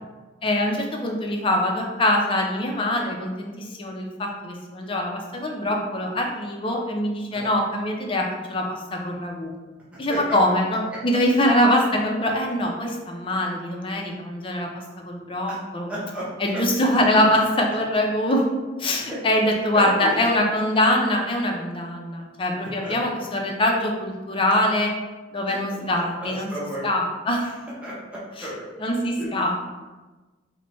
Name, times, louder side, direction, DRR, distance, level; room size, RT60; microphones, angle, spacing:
voice 1, 0.4-9.5 10.0-14.7 15.0-15.9 16.4-18.4 18.8-24.9 25.3-26.5 26.8-27.6 28.4-28.5 28.8-29.7, left 1 dB, 30° left, 0 dB, 0.5 m, -23 dB
voice 2, 15.9-16.3 16.5-16.6 19.1-19.2 19.7-20.2 22.8-22.9 25.5-25.8 26.2-26.9 27.8-28.6 29.2-29.3, right 1 dB, 5° right, -8 dB, 0.8 m, -33 dB
4.4 x 2.1 x 3.0 m, 1.2 s
head